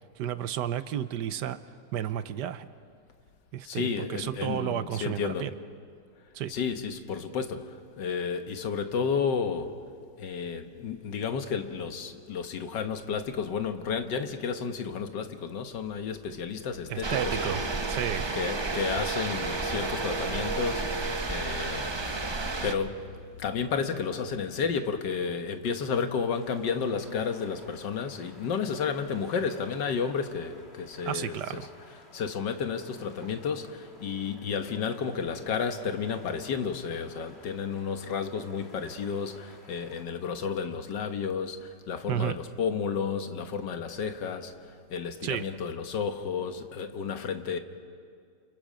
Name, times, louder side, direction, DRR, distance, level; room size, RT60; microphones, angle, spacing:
voice 1, 0.2-1.6 1.9-2.7 3.5-5.5 6.3-6.5 16.9-18.4 31.1-31.7 42.1-42.4 45.2-45.4, right 10 dB, 80° right, 13 dB, 1.4 m, -32 dB
voice 2, 3.6-5.5 6.5-9.8 10.2-17.7 18.3-23.1 23.4-31.6 32.1-47.6, left 6 dB, 90° left, 7 dB, 1.8 m, -32 dB
sound 1, 17.0-22.7, right 3 dB, 30° right, 0.5 m, -31 dB
sound 2, 26.3-40.0, left 1 dB, 35° left, 3.0 m, -54 dB
29.5 x 28.0 x 5.1 m, 2.2 s
omnidirectional pair, 1.8 m